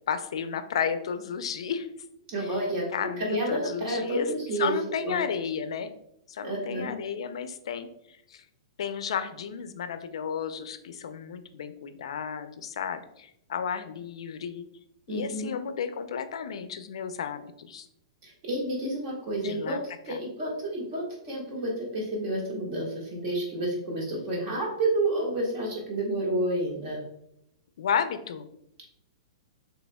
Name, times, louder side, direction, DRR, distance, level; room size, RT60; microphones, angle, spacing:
voice 1, 0.1-1.9 2.4-2.6 2.9-4.3 4.6-5.9 6.3-7.9 8.3-8.4 8.8-14.6 15.1-17.8 19.4-19.8 20.1-20.2 27.8-28.5, left 7 dB, 75° left, 10 dB, 0.5 m, -33 dB
voice 2, 2.3-4.7 5.0-5.2 6.4-7.0 15.1-15.5 18.2-19.8 20.0-27.0, right 1 dB, 35° right, -2 dB, 1.6 m, -30 dB
6.2 x 3.3 x 2.3 m, 0.75 s
hypercardioid pair, 155°, 3 cm